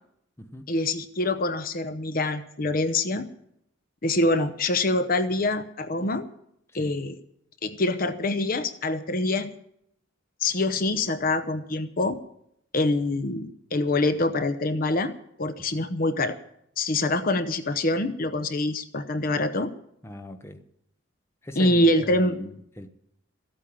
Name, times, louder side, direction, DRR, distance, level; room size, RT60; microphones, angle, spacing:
voice 1, 0.7-3.3 4.0-6.2 6.7-7.2 7.6-9.5 10.4-12.2 12.7-15.1 15.4-16.4 16.8-19.7 21.6-22.5, left 2 dB, 50° left, 0.8 m, -25 dB
voice 2, 20.0-20.6 21.4-22.9, equal, 15° left, 1.0 m, -39 dB
15.0 x 8.7 x 8.8 m
head